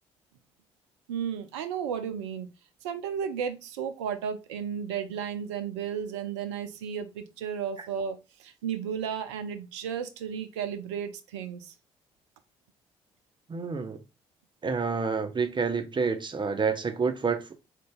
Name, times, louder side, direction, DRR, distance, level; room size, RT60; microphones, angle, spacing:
voice 1, 1.1-2.5 2.8-11.7, right 8 dB, 80° right, 0.4 m, -34 dB
voice 2, 13.5-14.0 14.6-17.4, right 5 dB, 35° right, 0.6 m, -28 dB
3.8 x 2.2 x 3.7 m
hypercardioid pair, 40°, 15 cm